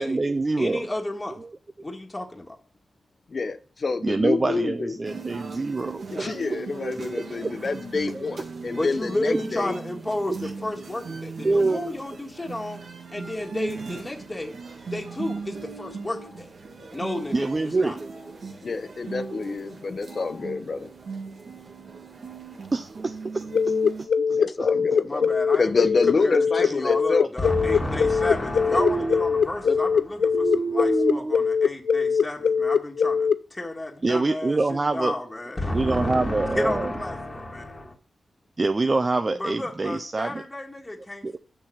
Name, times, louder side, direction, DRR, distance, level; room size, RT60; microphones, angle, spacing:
voice 1, 0.0-0.8 1.4-1.5 4.0-6.4 7.4-7.6 8.1-8.2 10.4-10.5 11.4-11.9 17.3-18.1 22.7-24.7 26.6-26.7 28.8-29.2 30.3-31.4 34.0-35.2 35.7-36.9 38.6-40.4 41.2-41.4, right 3 dB, 35° right, 8 dB, 0.5 m, -26 dB
voice 2, 0.6-1.4 1.8-2.6 8.7-12.8 13.1-14.5 14.9-16.5 16.9-18.0 24.9-37.9 39.4-41.4, left 1 dB, 20° left, 0 dB, 1.6 m, -31 dB
voice 3, 3.3-5.0 6.1-9.8 15.1-15.4 16.1-16.3 17.1-17.2 18.2-18.3 18.6-20.9 24.4-27.3 28.7-28.8 29.6-29.9 39.3-39.4, left 4 dB, 50° left, 11 dB, 0.7 m, -28 dB
sound 1, 5.0-24.1, right 4 dB, 70° right, 1.7 m, -38 dB
sound 2, 23.5-33.4, left 6 dB, 75° left, 0.3 m, -21 dB
6.6 x 5.8 x 6.2 m, 0.40 s
wide cardioid pair, 100°, 0 cm